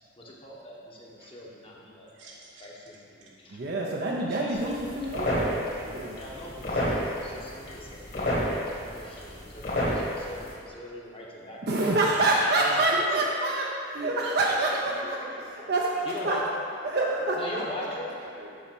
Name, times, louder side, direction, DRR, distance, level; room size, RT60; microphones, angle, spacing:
voice 1, 0.2-3.6 4.4-4.6 6.1-13.4 16.0-16.5 17.4-18.1, left 1 dB, 30° left, -3 dB, 1.0 m, -41 dB
voice 2, 2.1-2.7 3.2-3.3 6.0-6.2 12.9-13.2 13.9-14.6 14.9-16.4 17.1-17.4 18.2-18.6, equal, 75° right, -4 dB, 1.4 m, -42 dB
voice 3, 3.5-6.2 11.6-15.2 15.7-16.5 16.8-17.6, right 2 dB, 55° right, -2 dB, 0.6 m, -27 dB
sound 1, 4.5-10.5, left 1 dB, 50° left, 1.7 m, -31 dB
6.9 x 4.2 x 6.0 m, 2.4 s
head